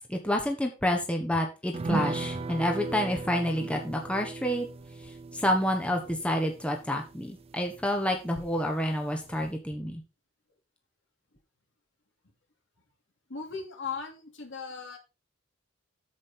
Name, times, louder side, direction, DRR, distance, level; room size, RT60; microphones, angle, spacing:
voice 1, 0.1-4.7 5.0-10.0, equal, 5° left, 3 dB, 1.1 m, -29 dB
sound 1, 1.7-8.5 8.8-8.9 9.3-9.4, right 3 dB, 30° right, 0.4 m, -37 dB
voice 2, 13.3-15.0, left 5 dB, 65° left, 2 dB, 2.7 m, -38 dB
8.5 x 7.5 x 4.3 m, 0.30 s
head